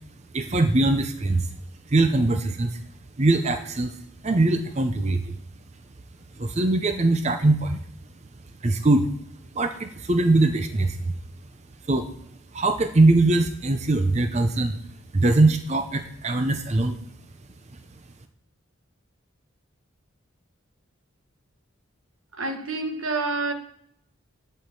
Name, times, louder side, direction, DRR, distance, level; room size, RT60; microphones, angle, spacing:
voice 1, 0.3-1.5 1.9-2.8 3.2-3.9 4.2-5.4 6.4-7.8 8.6-9.1 9.5-11.0 11.9-12.1 12.5-14.8 15.1-17.0, right 2 dB, 30° right, 0.6 m, -21 dB
voice 2, 22.4-23.5, right 3 dB, 80° right, 1.4 m, -27 dB
11.0 x 4.4 x 6.7 m
head